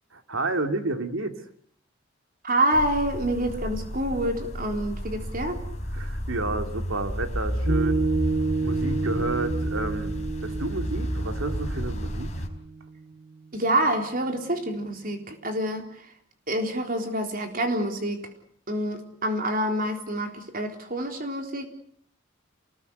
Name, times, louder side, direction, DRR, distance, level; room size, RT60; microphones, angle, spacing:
voice 1, 0.1-1.4 5.9-8.0 8.6-10.1 10.4-12.3, right 2 dB, 90° right, 7 dB, 2.6 m, -30 dB
voice 2, 2.4-5.6 13.5-16.1 16.5-18.3 18.7-21.7, right 1 dB, 45° right, 4 dB, 3.9 m, -27 dB
sound 1, 2.7-12.5, equal, 35° left, 4.3 m, -31 dB
Piano, 7.7-14.3, right 4 dB, 70° right, 2.1 m, -30 dB
28.0 x 20.0 x 8.1 m, 0.63 s
head